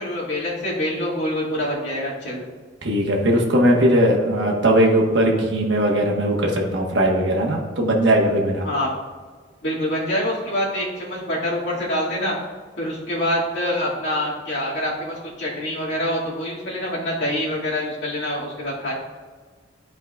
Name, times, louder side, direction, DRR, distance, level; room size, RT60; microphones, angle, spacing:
voice 1, 0.0-2.5 8.6-8.9 9.6-12.4 12.8-18.9, left 1 dB, 65° left, -6 dB, 2.2 m, -25 dB
voice 2, 2.8-8.7, right 1 dB, 65° right, -1 dB, 1.3 m, -19 dB
12.0 x 4.9 x 2.4 m, 1.5 s
head